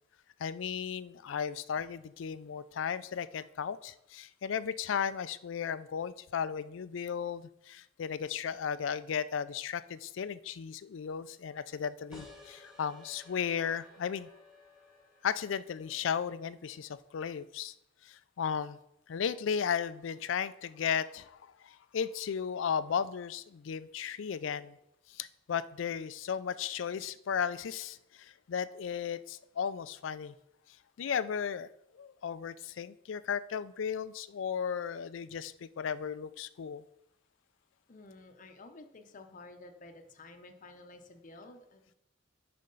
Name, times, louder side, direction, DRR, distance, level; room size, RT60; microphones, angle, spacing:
voice 1, 0.4-14.3 15.2-17.7 18.1-18.8 19.1-21.4 21.6-24.8 25.2-30.3 31.0-31.7 31.9-36.8, left 7 dB, 80° left, 15 dB, 0.4 m, -35 dB
sound 1, 12.1-17.3, left 2 dB, 5° right, 1.6 m, -57 dB
voice 2, 37.9-41.9, left 2 dB, 45° left, 6 dB, 0.7 m, -52 dB
11.0 x 4.3 x 3.9 m, 0.83 s
head